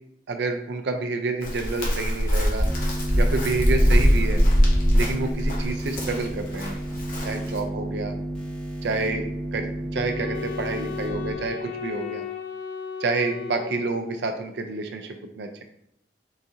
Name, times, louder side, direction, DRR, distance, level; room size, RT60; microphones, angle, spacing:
voice 1, 0.3-2.7 3.2-4.4 4.9-6.8 7.2-8.1 8.8-9.3 9.5-12.2 13.0-15.6, right 3 dB, 70° right, 5 dB, 0.4 m, -28 dB
Chirp tweet, 1.4-7.6, equal, 55° left, 0.8 m, -22 dB
sound 1, 2.6-11.3, right 1 dB, 5° left, 0.8 m, -32 dB
Wind instrument woodwind instrument, 9.9-14.4, left 7 dB, 85° left, 0.3 m, -35 dB
3.9 x 2.4 x 2.6 m, 0.76 s
head